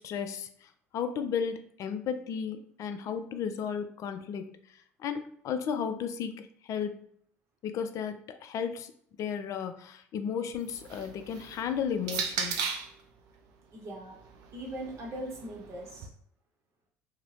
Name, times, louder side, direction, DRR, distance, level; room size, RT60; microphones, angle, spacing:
voice 1, 0.0-4.5 5.0-7.1 7.6-8.9 9.2-12.6, left 7 dB, 50° left, 8 dB, 0.3 m, -34 dB
sound 1, 10.5-13.0 13.9-16.1, right 6 dB, 60° right, 0.4 m, -37 dB
voice 2, 13.7-14.2 14.5-16.1, right 1 dB, 40° right, -2 dB, 0.8 m, -40 dB
2.6 x 2.0 x 3.0 m, 0.65 s
hypercardioid pair, 55°, 7 cm